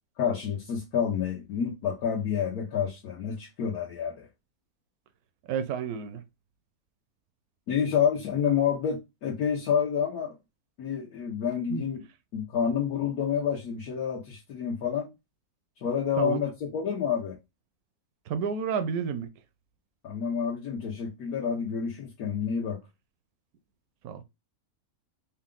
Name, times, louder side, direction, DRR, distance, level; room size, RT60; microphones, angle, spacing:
voice 1, 0.2-4.3 7.7-10.3 10.8-12.0 12.3-15.1 15.8-17.4 20.0-22.8, left 7 dB, 80° left, 1.4 m, -28 dB
voice 2, 5.5-6.2 11.7-11.8 16.2-16.4 18.3-19.3 24.0-24.2, right 7 dB, 80° right, 1.1 m, -30 dB
4.1 x 2.3 x 3.7 m
omnidirectional pair, 1.6 m